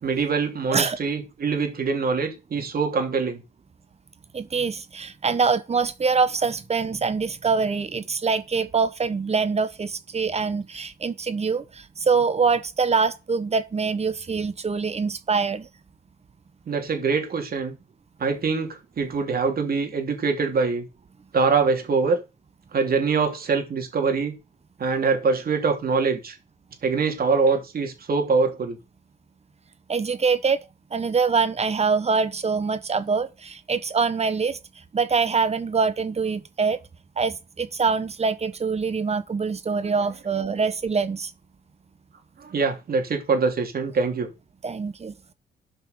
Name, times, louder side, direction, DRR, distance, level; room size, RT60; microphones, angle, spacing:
voice 1, 0.0-3.4 16.7-17.8 18.2-20.8 21.3-22.2 22.7-24.3 24.8-26.4 26.8-28.8 39.8-39.9 40.3-40.6 42.4-44.3, right 4 dB, 50° right, 3.0 m, -24 dB
voice 2, 4.3-11.6 12.1-15.7 29.9-30.6 30.9-34.6 34.9-36.8 37.2-41.3 44.6-45.1, right 5 dB, 30° right, 1.2 m, -24 dB
12.0 x 5.6 x 5.2 m
cardioid pair, 90°, 20 cm